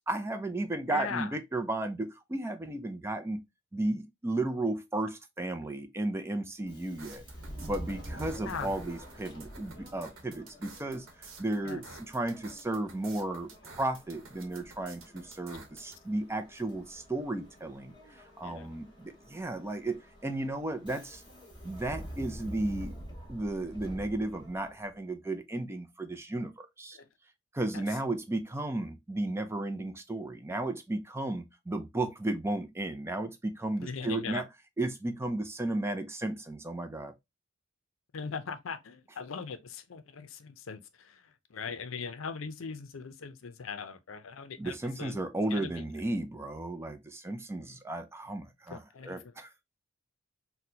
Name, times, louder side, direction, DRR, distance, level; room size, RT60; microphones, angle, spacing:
voice 1, 0.1-3.4 3.7-7.2 7.6-11.1 11.4-21.2 21.6-22.9 23.3-27.0 27.5-34.4 34.8-37.1 44.6-49.5, right 2 dB, 10° right, 0.4 m, -34 dB
voice 2, 0.9-1.4 8.4-8.7 11.6-11.8 18.4-18.8 26.9-27.1 27.7-27.8 33.8-34.4 38.1-45.2 45.5-45.9 48.7-49.3, left 5 dB, 70° left, 0.5 m, -40 dB
Subway metro underground, 6.6-25.0, equal, 20° left, 1.3 m, -47 dB
sound 1, 7.0-16.0, right 4 dB, 80° right, 1.0 m, -51 dB
4.1 x 2.2 x 2.7 m
head